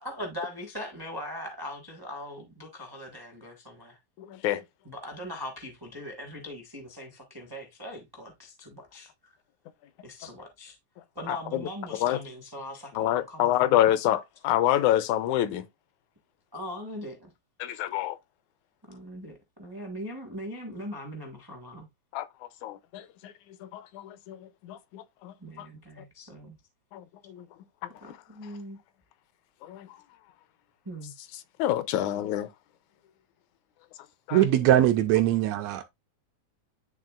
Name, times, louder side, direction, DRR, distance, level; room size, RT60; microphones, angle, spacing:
voice 1, 0.0-4.0 4.8-9.3 10.0-10.8 11.1-13.9 16.5-17.3 18.9-21.9 25.4-26.6 28.0-28.8 30.8-31.1, equal, 35° right, 0.3 m, -40 dB
voice 2, 4.2-4.6 11.3-11.6 12.0-12.2 13.0-15.7 17.6-18.2 22.1-22.3 22.6-23.3 23.6-24.4 24.6-25.7 26.9-27.4 29.6-29.9 31.6-32.5 34.3-34.4, left 12 dB, 85° left, 2.0 m, -27 dB
voice 3, 34.3-35.9, right 12 dB, 80° right, 1.6 m, -21 dB
11.0 x 3.6 x 2.4 m
omnidirectional pair, 3.4 m